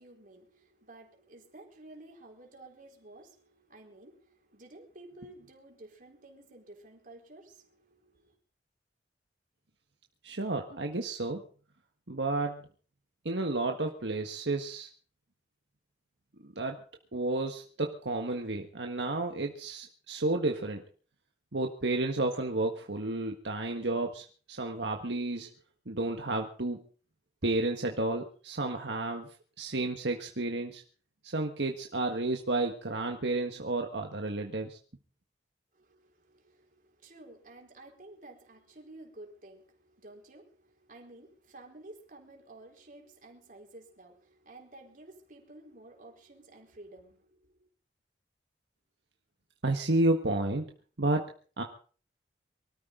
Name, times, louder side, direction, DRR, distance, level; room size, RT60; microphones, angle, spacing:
voice 1, 0.0-8.4 35.7-47.7, right 2 dB, 50° right, 4.2 m, -53 dB
voice 2, 10.2-11.4 12.1-12.6 13.2-14.9 16.4-16.8 17.1-20.8 21.5-25.5 25.9-26.8 27.4-29.3 29.6-30.8 31.2-34.8 49.6-50.7 51.0-51.3 51.6-51.7, right 2 dB, 80° right, 1.6 m, -31 dB
24.0 x 13.5 x 3.9 m
head